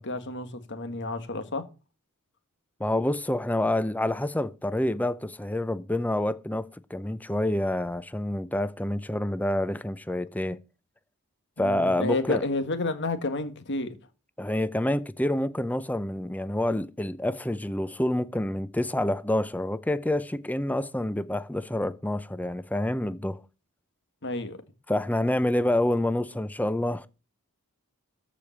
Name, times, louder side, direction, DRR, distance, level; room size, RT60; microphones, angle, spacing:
voice 1, 0.0-1.7 11.6-14.0 24.2-24.6, left 2 dB, 55° left, 1.8 m, -30 dB
voice 2, 2.8-10.6 11.6-12.4 14.4-23.4 24.9-27.1, left 1 dB, 5° left, 0.6 m, -27 dB
14.0 x 5.1 x 7.2 m
head